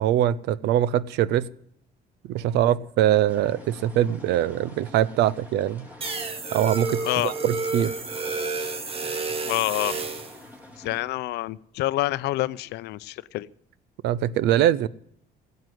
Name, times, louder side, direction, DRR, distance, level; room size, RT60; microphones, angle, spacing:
voice 1, 0.0-1.5 2.3-5.9 6.5-7.9 14.0-14.9, right 12 dB, 80° right, 19 dB, 0.7 m, -23 dB
sound 1, 3.3-11.0, left 1 dB, 10° right, 3.1 m, -46 dB
sound 2, 6.0-10.4, right 4 dB, 35° right, 1.7 m, -30 dB
voice 2, 7.0-7.3 9.4-10.0 10.8-13.5, left 17 dB, 80° left, 17 dB, 0.6 m, -27 dB
16.0 x 8.0 x 9.3 m, 0.69 s
cardioid pair, 110°, 17 cm